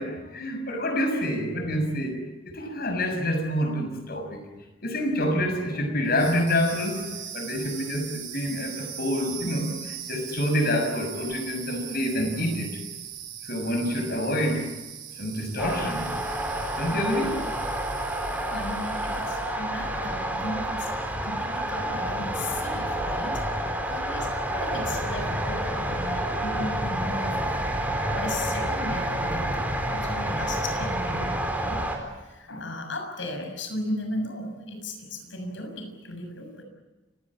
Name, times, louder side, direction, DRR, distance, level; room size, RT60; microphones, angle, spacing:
voice 1, 0.0-2.3 2.5-4.4 4.8-7.1 7.3-12.8 13.5-14.7 15.2-16.1 16.8-17.4, equal, 55° left, 6 dB, 6.4 m, -27 dB
sound 1, 6.0-19.6, right 10 dB, 65° right, 4.7 m, -40 dB
sound 2, 15.6-32.0, right 1 dB, 10° right, 4.2 m, -29 dB
voice 2, 18.3-20.9 21.2-23.4 23.9-31.9 32.2-36.6, left 1 dB, 75° left, 5 dB, 6.7 m, -36 dB
29.5 x 17.5 x 8.7 m, 1.1 s
head